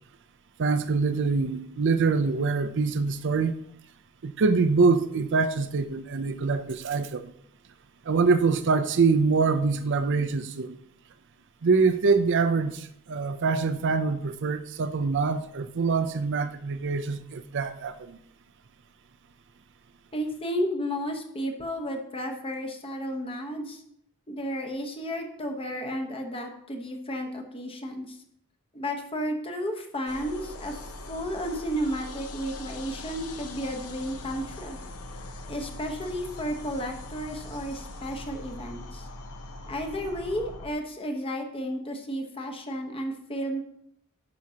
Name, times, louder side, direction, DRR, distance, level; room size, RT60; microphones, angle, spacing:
voice 1, 0.6-3.6 4.2-7.2 8.1-10.8 11.6-18.2, right 4 dB, 55° right, 0.5 m, -24 dB
voice 2, 20.1-23.8 24.3-28.2 28.7-30.8 31.1-34.8 35.5-39.1 39.7-43.6, equal, 25° left, 1.1 m, -33 dB
sound 1, 30.1-40.7, left 2 dB, 85° left, 0.9 m, -41 dB
10.5 x 6.2 x 2.9 m
head